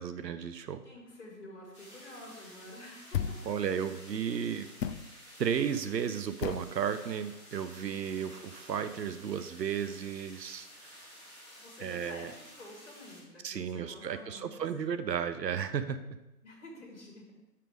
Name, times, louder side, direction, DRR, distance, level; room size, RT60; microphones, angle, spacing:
voice 1, 0.0-0.8 3.5-4.7 5.4-10.9 11.8-12.3 13.4-16.0, right 8 dB, 85° right, 12 dB, 0.6 m, -34 dB
voice 2, 0.8-3.9 7.8-8.4 11.6-14.9 16.4-17.3, left 1 dB, 45° left, -1 dB, 2.0 m, -50 dB
sound 1, 1.7-13.2, equal, 20° left, 2.1 m, -53 dB
sound 2, 3.1-3.5 4.8-5.1 6.4-6.7, left 8 dB, 80° left, 0.6 m, -33 dB
5.9 x 5.2 x 4.6 m, 0.99 s
figure-of-eight pair, 175°, 49 cm